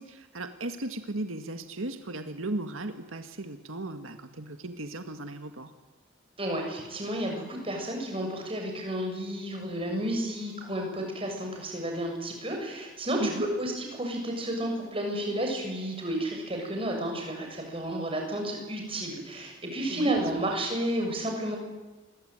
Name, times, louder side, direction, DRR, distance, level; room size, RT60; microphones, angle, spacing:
voice 1, 0.0-5.7 13.2-13.5 19.9-20.2, right 2 dB, 85° right, 7 dB, 1.9 m, -36 dB
voice 2, 6.4-21.6, right 1 dB, 25° right, 2 dB, 7.2 m, -31 dB
28.0 x 22.0 x 9.2 m, 1.2 s
head